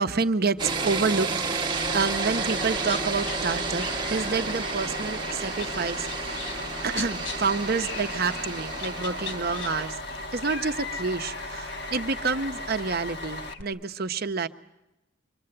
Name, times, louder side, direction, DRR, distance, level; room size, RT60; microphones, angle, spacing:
voice 1, 0.0-6.4 6.8-10.0 10.3-14.5, right 4 dB, 50° right, 8 dB, 0.8 m, -28 dB
sound 1, 0.6-9.9, right 4 dB, 25° right, 1.2 m, -31 dB
Bus, 1.7-13.5, left 2 dB, 55° left, 1.5 m, -37 dB
sound 2, 2.8-3.4 3.8-6.6 6.9-7.4 7.8-8.5 8.8-13.6, left 4 dB, 85° left, 3.5 m, -40 dB
25.5 x 24.0 x 7.8 m, 0.95 s
head